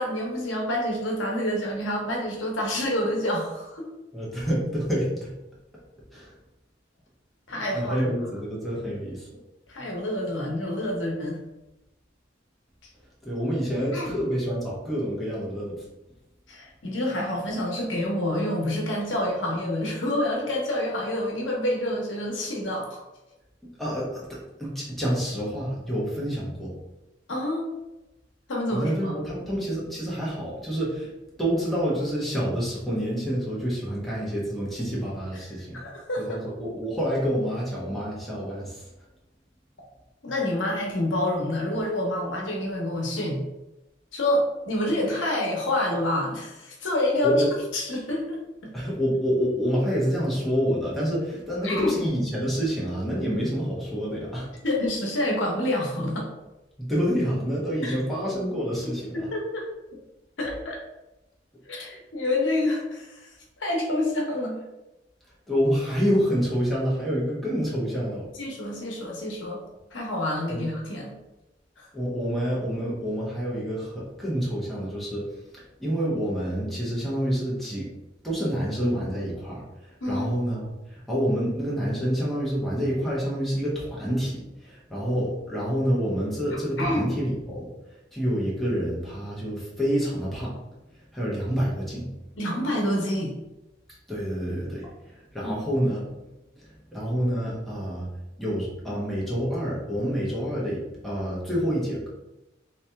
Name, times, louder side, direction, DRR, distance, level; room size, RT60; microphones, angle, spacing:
voice 1, 0.0-3.9 7.5-8.1 9.7-11.4 13.9-14.1 16.5-23.0 27.3-27.7 28.5-29.1 35.7-36.4 40.2-43.4 44.1-47.4 47.7-48.7 51.6-51.9 54.6-56.3 57.8-58.0 58.8-59.7 60.4-60.8 61.7-63.3 63.6-64.6 68.4-69.6 69.9-71.1 71.8-71.9 80.0-80.3 86.8-87.1 92.4-93.3 95.4-95.5, left 1 dB, 80° left, -1 dB, 0.9 m, -27 dB
voice 2, 4.1-5.3 6.1-6.3 7.7-9.3 13.2-15.8 23.8-26.7 28.7-31.1 31.4-35.8 36.2-38.8 47.2-47.5 48.7-54.5 56.8-59.3 65.5-68.3 70.5-70.6 71.9-75.3 75.8-77.9 78.2-79.6 80.1-87.7 88.1-90.6 91.1-92.1 94.1-94.8 95.3-96.1 96.6-98.1 98.4-102.1, equal, ahead, -7 dB, 0.9 m, -27 dB
3.1 x 2.9 x 3.4 m, 0.97 s
head